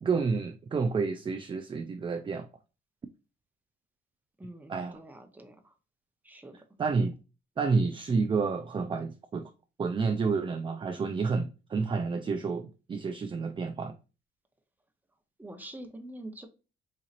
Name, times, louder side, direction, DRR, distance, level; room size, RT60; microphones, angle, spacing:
voice 1, 0.0-2.5 4.7-5.0 6.8-7.2 7.6-9.5 9.8-14.0, right 4 dB, 25° right, 0.4 m, -29 dB
voice 2, 4.4-5.7 6.2-6.6 15.4-16.5, right 1 dB, 10° right, 0.8 m, -45 dB
4.1 x 2.8 x 2.4 m
cardioid pair, 90°, 20 cm